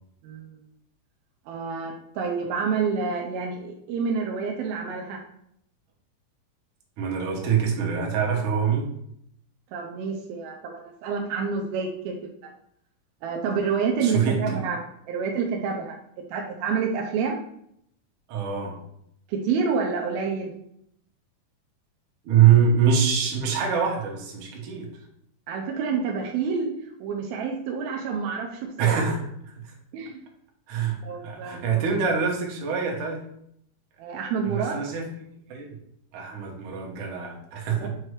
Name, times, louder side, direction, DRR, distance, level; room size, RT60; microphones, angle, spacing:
voice 1, 1.5-5.2 9.7-12.1 13.2-14.8 15.1-16.0 16.3-17.4 19.3-20.5 25.5-26.7 27.0-29.1 29.9-30.3 31.0-31.9 34.0-34.8 37.8-37.9, right 5 dB, 80° right, 0 dB, 2.6 m, -28 dB
voice 2, 7.0-8.9 14.0-14.4 18.3-18.8 22.3-24.9 28.8-29.2 30.7-31.0 31.2-33.2 34.4-35.1 35.5-35.8 36.1-37.9, right 7 dB, 65° right, -1 dB, 2.4 m, -24 dB
7.6 x 3.0 x 4.8 m, 0.72 s
omnidirectional pair, 4.3 m